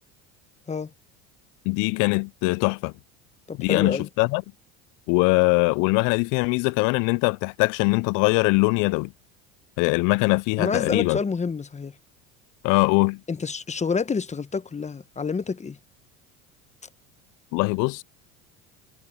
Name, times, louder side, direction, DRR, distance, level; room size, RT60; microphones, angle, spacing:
voice 1, 1.7-2.9 3.6-4.4 5.1-9.1 9.8-11.2 12.6-13.2 17.5-18.0, left 29 dB, 60° left, 0.4 m, -22 dB
voice 2, 3.5-4.1 10.6-11.9 13.3-15.8, left 5 dB, 20° left, 1.2 m, -28 dB
hypercardioid pair, 85°, 36 cm